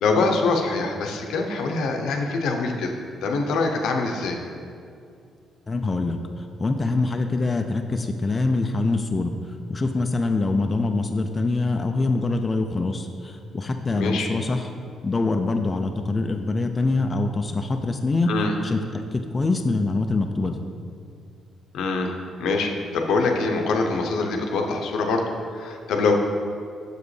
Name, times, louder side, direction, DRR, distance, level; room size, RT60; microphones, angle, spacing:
voice 1, 0.0-2.9 3.2-4.4 13.9-14.3 18.3-18.5 21.7-22.1 22.4-25.3 25.5-26.1, left 3 dB, 80° left, 2 dB, 0.6 m, -24 dB
voice 2, 5.7-14.7 15.0-18.8 19.1-20.6, left 3 dB, 30° left, 5 dB, 0.3 m, -24 dB
6.5 x 5.0 x 3.2 m, 2.3 s
cardioid pair, 90°, 0 cm